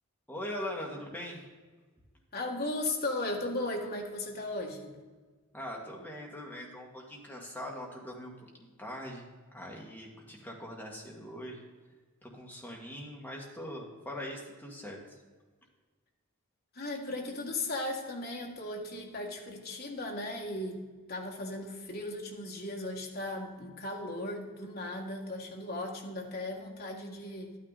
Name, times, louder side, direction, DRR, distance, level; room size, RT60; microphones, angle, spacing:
voice 1, 0.3-1.5 5.5-8.3 8.6-9.3 9.5-11.6 12.2-15.2, left 1 dB, 10° left, -2 dB, 1.9 m, -41 dB
voice 2, 2.3-5.0 16.7-20.8 21.1-27.5, left 2 dB, 45° left, 0 dB, 1.7 m, -36 dB
11.5 x 9.3 x 4.1 m, 1.4 s
head